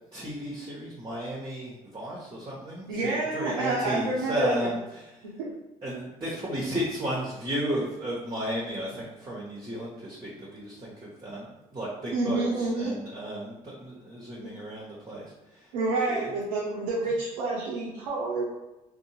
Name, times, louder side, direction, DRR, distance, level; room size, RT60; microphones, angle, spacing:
voice 1, 0.1-5.3 5.8-15.7 16.1-16.3, right 1 dB, 25° right, -5 dB, 0.9 m, -34 dB
voice 2, 2.9-4.6 5.4-5.5 12.1-12.9 14.4-14.6 15.7-18.4, right 2 dB, 80° right, -5 dB, 0.6 m, -28 dB
2.6 x 2.1 x 3.0 m, 1.0 s
hypercardioid pair, 55°, 20 cm